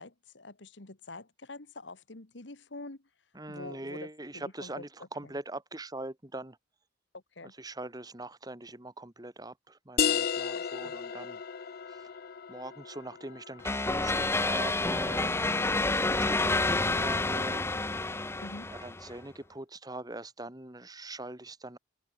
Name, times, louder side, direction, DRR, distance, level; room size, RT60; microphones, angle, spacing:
voice 1, 0.0-3.0 3.5-4.1 4.3-4.8 7.1-7.5 10.5-10.9 18.4-18.7, left 2 dB, 65° left, 1.9 m, -46 dB
voice 2, 3.3-6.6 7.6-12.2 12.5-17.7 18.7-21.8, right 2 dB, 20° right, 2.0 m, -42 dB
sound 1, 10.0-15.3, left 8 dB, 50° left, 0.5 m, -34 dB
sound 2, 13.6-19.1, left 2 dB, 15° left, 0.8 m, -29 dB
head